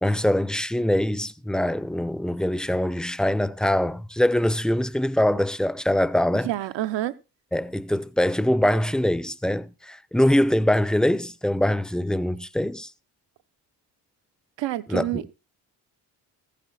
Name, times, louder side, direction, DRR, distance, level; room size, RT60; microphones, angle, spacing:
voice 1, 0.0-6.5 7.5-12.9 14.9-15.2, left 1 dB, ahead, 0.7 m, -23 dB
voice 2, 6.4-7.1 14.6-15.4, right 14 dB, 60° right, 0.9 m, -28 dB
14.5 x 8.7 x 4.2 m
hypercardioid pair, 45°, 50 cm